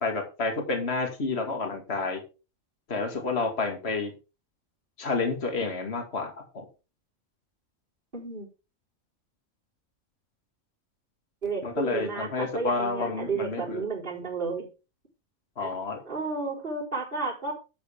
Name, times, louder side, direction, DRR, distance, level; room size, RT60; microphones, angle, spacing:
voice 1, 0.0-2.2 2.9-4.1 5.0-6.6 11.6-13.8 15.6-16.0, left 3 dB, 50° left, 3 dB, 2.5 m, -29 dB
voice 2, 8.1-8.5 11.4-14.7 15.6-15.7 16.1-17.5, right 4 dB, 40° right, -3 dB, 4.2 m, -32 dB
11.5 x 8.2 x 3.5 m, 0.31 s
omnidirectional pair, 1.4 m